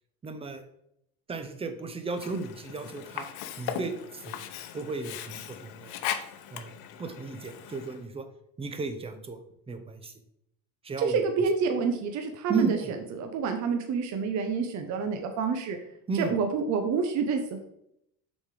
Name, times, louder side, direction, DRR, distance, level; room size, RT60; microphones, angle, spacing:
voice 1, 0.2-0.6 1.3-3.3 3.6-4.4 4.7-5.9 6.5-6.7 7.0-8.3 8.6-9.4 9.7-10.1 10.8-11.2 12.5-12.7 16.1-16.3, right 4 dB, 15° right, 8 dB, 0.7 m, -34 dB
Sink (filling or washing), 2.1-8.1, left 10 dB, 80° left, 0.8 m, -38 dB
voice 2, 11.0-12.8 13.1-15.8 16.1-17.6, right 5 dB, 50° right, 5 dB, 0.8 m, -28 dB
6.6 x 4.3 x 4.8 m, 0.77 s
cardioid pair, 145°, 36 cm